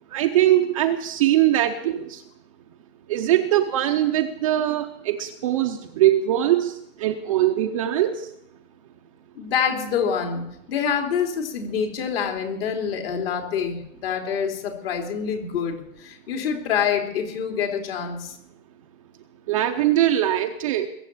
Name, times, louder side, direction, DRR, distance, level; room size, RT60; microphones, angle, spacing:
voice 1, 0.1-2.2 3.1-8.3 19.5-20.9, right 12 dB, 25° right, 5 dB, 0.6 m, -21 dB
voice 2, 9.4-10.4 10.7-18.4, left 7 dB, 45° left, 3 dB, 3.4 m, -26 dB
21.0 x 7.6 x 8.4 m, 0.79 s
hypercardioid pair, 160°, 41 cm